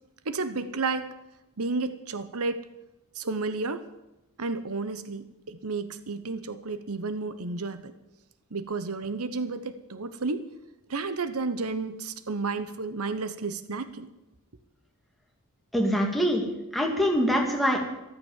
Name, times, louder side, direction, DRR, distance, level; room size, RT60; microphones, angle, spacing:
voice 1, 0.2-1.1 1.6-2.6 3.1-3.9 4.4-7.9 8.5-10.5 10.9-14.1, right 3 dB, 80° right, 12 dB, 1.0 m, -32 dB
voice 2, 15.7-16.4 16.7-17.8, equal, ahead, 0 dB, 2.6 m, -24 dB
13.5 x 13.0 x 7.5 m, 0.96 s
head